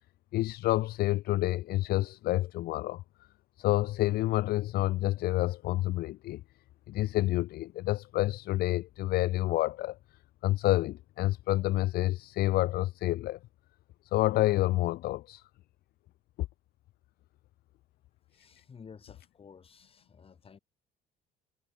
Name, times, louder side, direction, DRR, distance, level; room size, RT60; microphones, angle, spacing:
voice 1, 0.3-3.0 3.6-6.4 6.9-10.0 10.4-13.4 14.1-15.4, left 16 dB, 65° left, 0.5 m, -28 dB
voice 2, 18.3-20.6, left 6 dB, 35° left, 3.8 m, -53 dB
cardioid pair, 110°, 17 cm